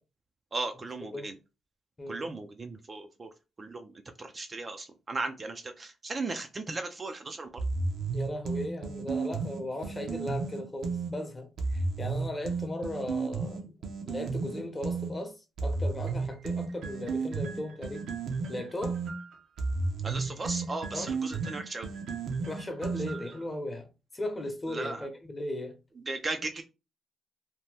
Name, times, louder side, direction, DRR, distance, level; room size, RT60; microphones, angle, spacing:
voice 1, 0.5-1.3 2.1-3.3 3.6-3.9 4.2-7.5 20.0-21.9 24.7-25.1 26.1-26.6, right 3 dB, 30° right, 0.4 m, -36 dB
voice 2, 2.0-2.3 8.1-13.7 14.0-18.0 18.5-19.0 20.9-21.1 22.5-23.9 24.1-25.8, left 1 dB, 20° left, 0.9 m, -37 dB
sound 1, 7.6-11.1 11.6-15.1 15.6-23.4, right 4 dB, 70° right, 0.7 m, -33 dB
2.8 x 2.2 x 3.3 m
cardioid pair, 90°, 0 cm